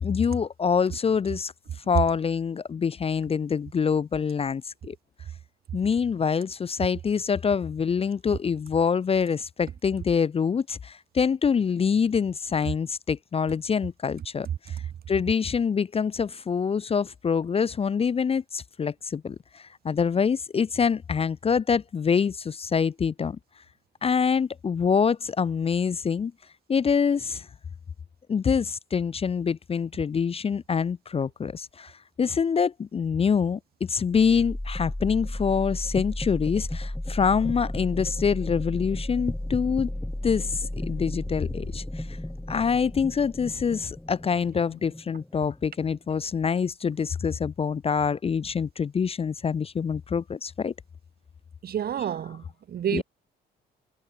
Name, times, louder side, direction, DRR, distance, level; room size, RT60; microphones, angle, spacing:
voice 1, 0.0-1.5 1.9-5.0 5.7-14.8 15.1-23.4 24.0-26.3 26.7-27.5 28.3-31.9 32.2-39.9 40.2-42.2 42.5-50.7 52.9-53.0, left 6 dB, 30° left, 0.5 m, -25 dB
sound 1, 34.1-46.0, left 1 dB, 5° left, 1.1 m, -34 dB
voice 2, 51.6-53.0, right 9 dB, 50° right, 0.8 m, -29 dB
cardioid pair, 90°, 20 cm